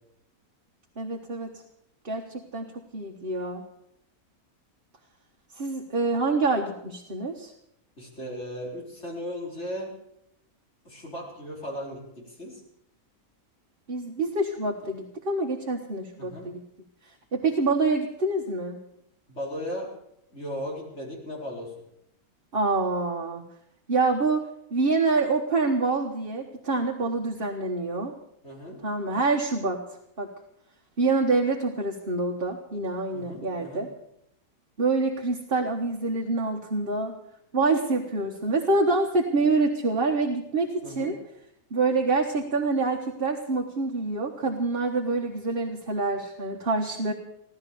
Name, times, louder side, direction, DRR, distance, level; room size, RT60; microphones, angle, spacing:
voice 1, 1.0-1.6 2.0-3.6 5.5-7.5 13.9-16.6 17.3-18.8 22.5-23.4 23.9-28.1 28.8-29.8 30.2-30.3 31.0-33.9 34.8-37.2 37.5-41.2 41.7-47.1, right 3 dB, 40° right, 1 dB, 1.5 m, -26 dB
voice 2, 8.0-9.9 10.8-12.6 16.2-16.5 19.3-19.9 20.3-21.7 28.4-28.8 33.1-33.8 40.8-41.1, equal, 45° left, -3 dB, 5.0 m, -36 dB
17.0 x 12.5 x 6.8 m, 0.78 s
omnidirectional pair, 1.6 m